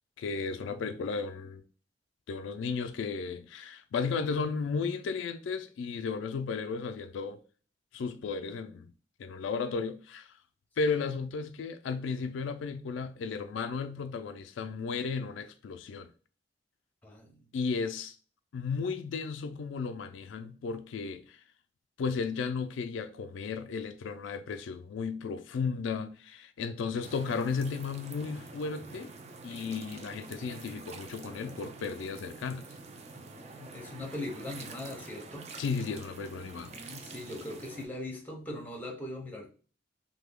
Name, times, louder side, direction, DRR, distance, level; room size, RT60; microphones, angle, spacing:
voice 1, 0.2-1.6 2.3-7.4 7.9-8.9 9.2-10.3 10.8-16.1 17.5-18.2 18.5-21.4 22.0-29.1 29.4-32.6 35.6-36.8, left 5 dB, 90° left, 0.3 m, -34 dB
voice 2, 17.0-17.5 33.1-35.5 36.7-39.5, left 1 dB, 10° left, 0.7 m, -41 dB
sound 1, 27.0-37.9, right 3 dB, 35° right, 0.4 m, -47 dB
3.1 x 2.1 x 3.5 m
head